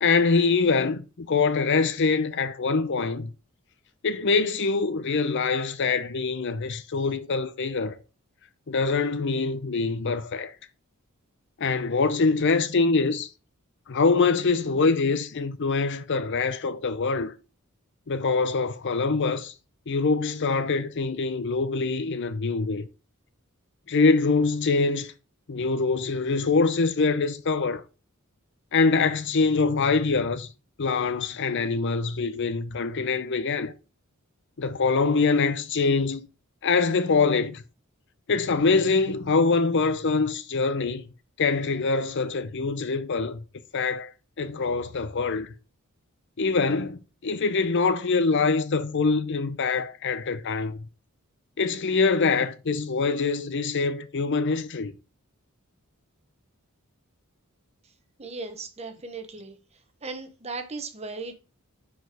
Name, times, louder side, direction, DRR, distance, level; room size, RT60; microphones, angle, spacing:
voice 1, 0.0-3.3 4.0-8.0 8.7-10.5 11.6-13.3 13.9-17.3 18.1-19.5 19.9-22.9 23.9-25.1 25.5-27.8 28.7-30.5 30.8-33.7 34.6-36.2 36.6-37.6 38.3-41.0 41.4-43.4 43.7-44.1 44.4-45.5 46.4-50.9 51.6-54.9, left 4 dB, 55° left, 0.6 m, -24 dB
voice 2, 58.2-59.6 60.0-61.4, right 3 dB, 30° right, 1.0 m, -37 dB
6.2 x 4.8 x 4.8 m
head